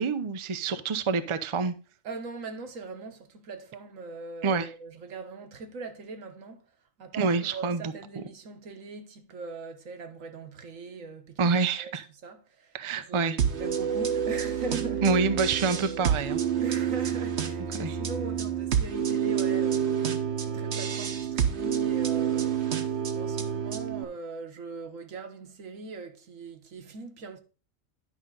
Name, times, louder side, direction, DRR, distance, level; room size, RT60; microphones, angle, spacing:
voice 1, 0.0-1.7 4.4-4.7 7.1-8.2 11.4-12.0 12.7-13.4 15.0-16.4 17.8-18.0, right 4 dB, 35° right, 0.5 m, -27 dB
voice 2, 2.0-6.6 7.0-11.9 12.2-15.1 15.6-16.0 16.6-27.4, right 3 dB, 70° right, 1.5 m, -41 dB
sound 1, 13.4-24.0, right 8 dB, 55° right, 1.1 m, -28 dB
10.5 x 5.3 x 3.8 m
omnidirectional pair, 1.4 m